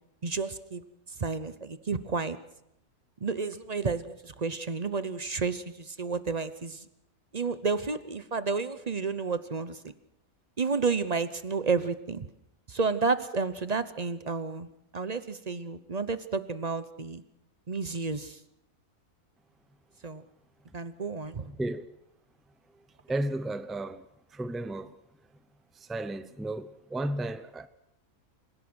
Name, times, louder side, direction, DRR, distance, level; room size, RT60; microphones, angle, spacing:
voice 1, 0.2-0.8 1.2-2.4 3.2-6.9 7.3-9.9 10.6-12.3 12.7-14.7 14.9-17.2 17.7-18.4 20.0-20.2 20.7-21.5, right 4 dB, 35° right, 0.7 m, -31 dB
voice 2, 21.5-21.8 23.1-24.1 24.3-24.9 25.7-27.7, right 1 dB, ahead, 0.4 m, -33 dB
27.5 x 17.0 x 6.3 m
omnidirectional pair, 1.6 m